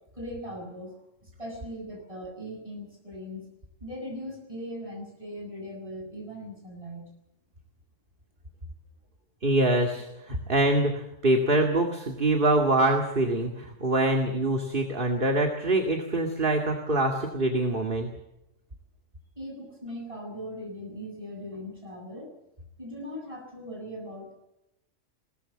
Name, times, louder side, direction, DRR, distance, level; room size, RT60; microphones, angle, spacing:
voice 1, 0.1-0.9 1.2-3.4 3.8-7.1 19.4-22.3 22.8-24.3, equal, 25° right, 0 dB, 7.8 m, -39 dB
voice 2, 9.4-18.1, right 1 dB, 45° right, 3 dB, 2.3 m, -24 dB
21.5 x 19.0 x 7.5 m, 0.89 s
omnidirectional pair, 1.3 m